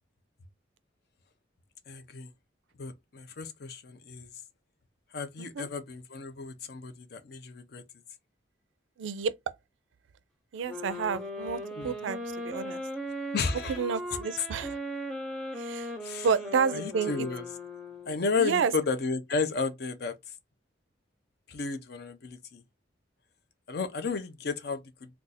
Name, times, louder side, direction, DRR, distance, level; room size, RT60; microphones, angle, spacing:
voice 1, 1.9-2.3 2.8-4.3 5.1-7.8 11.8-11.9 13.3-13.8 16.0-16.3 16.7-17.5 18.1-20.2 21.5-22.6 23.7-25.1, left 4 dB, 55° left, 0.5 m, -33 dB
voice 2, 9.0-9.3 10.5-12.8 13.7-14.8 15.5-15.9 16.2-17.3 18.4-18.7, right 6 dB, 80° right, 0.4 m, -30 dB
sound 1, 10.7-18.4, equal, 5° left, 0.7 m, -38 dB
2.5 x 2.3 x 4.0 m
head